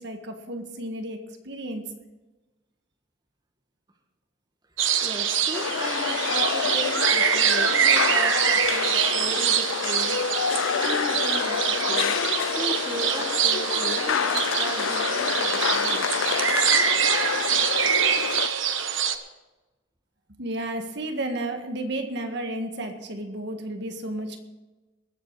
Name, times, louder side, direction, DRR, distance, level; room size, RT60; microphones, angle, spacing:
voice 1, 0.0-1.9 20.4-24.4, right 1 dB, 55° right, 5 dB, 1.7 m, -32 dB
sound 1, 4.8-19.2, right 8 dB, 70° right, 1.1 m, -25 dB
voice 2, 5.0-16.1, right 1 dB, 20° right, 2 dB, 1.4 m, -36 dB
sound 2, 5.5-18.5, left 7 dB, 75° left, 0.5 m, -27 dB
20.5 x 7.7 x 4.8 m, 1.1 s
head